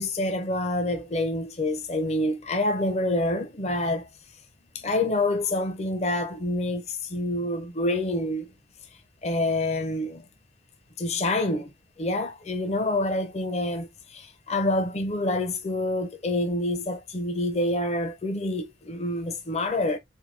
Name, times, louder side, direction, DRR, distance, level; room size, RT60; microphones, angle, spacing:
voice 1, 0.0-4.1 4.7-8.5 9.2-10.2 11.0-11.7 12.0-20.0, left 1 dB, 35° left, 0.6 m, -27 dB
4.4 x 2.6 x 2.7 m
head